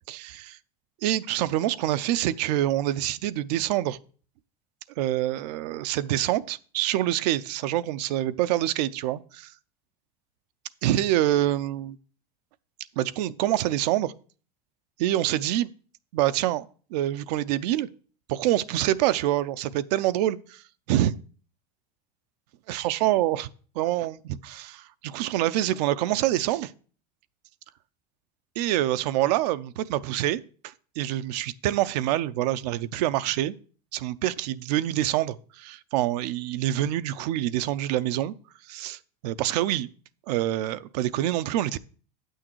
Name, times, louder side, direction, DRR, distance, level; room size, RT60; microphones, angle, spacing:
voice 1, 0.1-0.6 1.0-4.0 5.0-9.5 10.8-12.0 13.0-14.1 15.0-15.7 16.1-17.9 18.3-20.6 20.9-21.1 22.7-23.5 23.8-26.7 28.6-30.4 31.0-33.5 33.9-38.3 38.7-39.9 40.3-41.8, right 13 dB, 80° right, 0.6 m, -26 dB
8.6 x 6.4 x 4.5 m
supercardioid pair, 125°, 21 cm